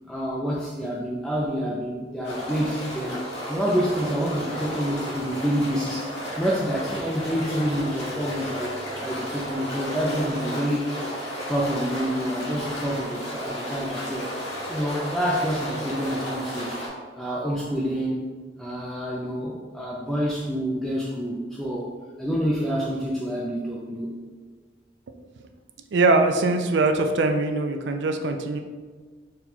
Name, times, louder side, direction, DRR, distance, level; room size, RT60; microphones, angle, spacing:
voice 1, 0.1-3.2 3.5-6.1 6.4-11.1 11.5-14.3 14.7-16.7 17.2-18.2 18.6-21.9 22.2-24.1, equal, ahead, -6 dB, 0.4 m, -27 dB
sound 1, 2.2-16.9, equal, 65° left, 1.3 m, -33 dB
voice 2, 25.9-28.6, right 3 dB, 80° right, 5 dB, 0.4 m, -22 dB
4.3 x 2.3 x 4.0 m, 1.4 s
head